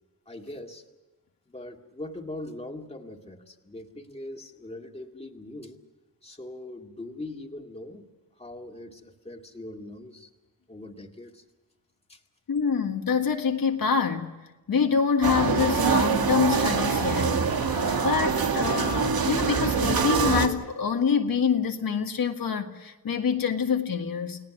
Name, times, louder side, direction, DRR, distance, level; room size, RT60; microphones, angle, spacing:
voice 1, 0.3-0.8 1.5-5.8 6.2-8.1 8.4-10.3 10.7-11.4 12.1-12.2, left 1 dB, 15° left, 2 dB, 2.2 m, -41 dB
voice 2, 12.5-14.3 14.7-17.4 18.0-24.4, left 6 dB, 70° left, 4 dB, 1.8 m, -26 dB
sound 1, 15.2-20.5, right 5 dB, 80° right, 2.1 m, -24 dB
30.0 x 18.0 x 6.1 m, 1.2 s
wide cardioid pair, 115°, 36 cm